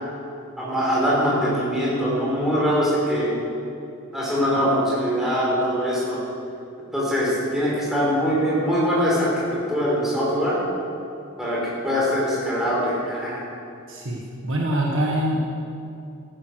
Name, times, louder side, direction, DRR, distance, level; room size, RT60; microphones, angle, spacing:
voice 1, 0.6-3.3 4.1-6.2 6.9-10.6 11.4-13.4, equal, ahead, -7 dB, 4.2 m, -22 dB
voice 2, 13.9-15.4, right 1 dB, 60° right, -2 dB, 1.6 m, -24 dB
14.5 x 11.0 x 6.5 m, 2.6 s
head